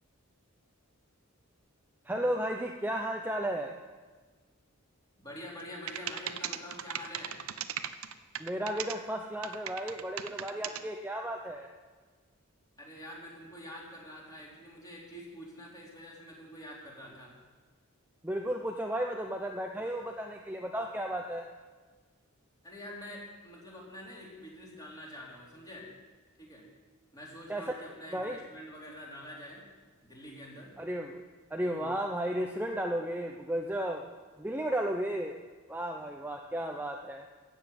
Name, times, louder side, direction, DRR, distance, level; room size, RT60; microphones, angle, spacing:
voice 1, 2.0-3.7 8.4-11.7 18.2-21.5 27.5-27.7 28.1-28.4 30.8-31.2 31.5-34.0 34.4-35.4 35.7-37.3, right 1 dB, 10° right, 2 dB, 0.7 m, -34 dB
voice 2, 5.2-7.4 12.8-17.3 22.6-25.9 26.4-26.7 27.1-29.7 30.0-30.8 31.6-31.9, left 1 dB, 20° left, -4 dB, 3.6 m, -46 dB
sound 1, 5.6-5.7 5.9-8.9 9.4-10.8, right 10 dB, 80° right, 0.7 m, -37 dB
15.5 x 7.3 x 8.6 m, 1.4 s
head